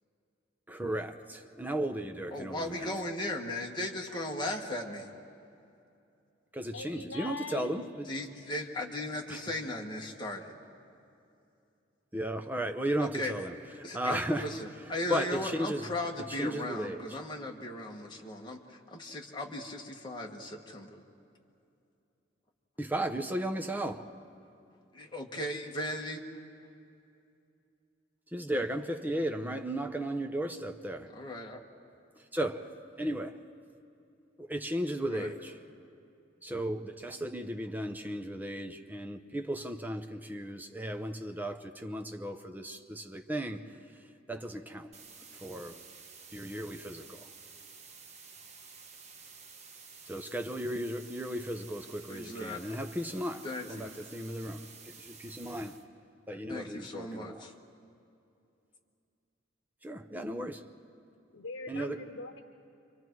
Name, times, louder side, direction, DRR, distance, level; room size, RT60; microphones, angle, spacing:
voice 1, 0.7-2.9 6.5-8.1 9.3-9.4 12.1-13.6 13.9-14.5 15.1-15.9 16.3-17.2 22.8-24.1 28.3-31.1 32.3-33.4 34.4-35.6 36.4-43.8 44.3-44.9 45.3-45.8 46.3-47.3 50.1-54.7 55.0-55.8 56.3-57.5 59.8-60.6 61.7-62.0, right 1 dB, 10° right, 0.8 m, -35 dB
voice 2, 2.3-5.1 8.1-10.6 13.0-13.3 13.8-21.0 24.9-26.2 31.1-31.6 35.1-35.3 52.1-52.8 53.4-53.9 56.5-57.5, left 1 dB, 25° left, 1.6 m, -37 dB
voice 3, 6.7-7.8 61.3-62.4, left 3 dB, 85° left, 1.0 m, -41 dB
sound 1, 44.9-55.9, right 5 dB, 35° right, 1.2 m, -52 dB
29.0 x 24.5 x 4.7 m
head